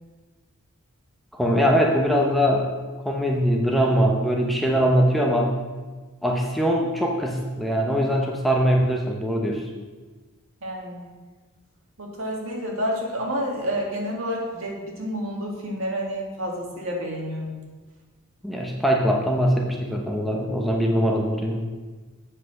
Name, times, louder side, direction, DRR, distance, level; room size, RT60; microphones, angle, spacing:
voice 1, 1.3-2.7 3.0-5.6 6.2-9.6 18.4-21.7, equal, ahead, 0 dB, 0.8 m, -22 dB
voice 2, 10.6-11.1 12.0-17.5, equal, 65° right, -1 dB, 2.1 m, -29 dB
8.0 x 5.8 x 6.5 m, 1.3 s
head